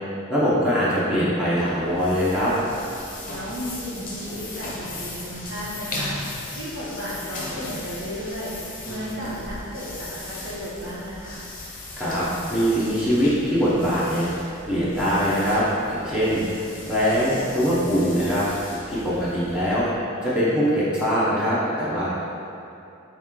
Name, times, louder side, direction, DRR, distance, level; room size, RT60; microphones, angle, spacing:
voice 1, 0.3-2.5 12.0-16.4 16.8-18.4 18.9-22.2, equal, 5° right, -11 dB, 0.7 m, -22 dB
sound 1, 1.5-20.0, left 2 dB, 40° left, 0.6 m, -37 dB
voice 2, 3.2-11.4, equal, 60° right, -10 dB, 1.3 m, -34 dB
3.5 x 3.0 x 3.6 m, 2.7 s
head